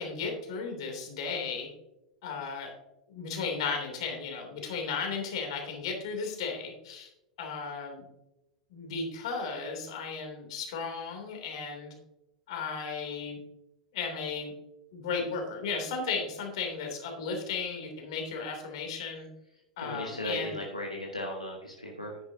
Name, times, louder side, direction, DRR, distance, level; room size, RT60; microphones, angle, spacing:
voice 1, 0.0-1.7 2.2-2.7 3.1-7.1 7.4-8.0 8.7-11.9 12.5-13.4 13.9-14.5 14.9-19.3 19.8-20.6, left 5 dB, 55° left, 3 dB, 3.0 m, -35 dB
voice 2, 19.8-22.2, equal, 90° left, -2 dB, 1.5 m, -36 dB
10.5 x 10.0 x 2.8 m, 0.90 s
figure-of-eight pair, 90°, 4 cm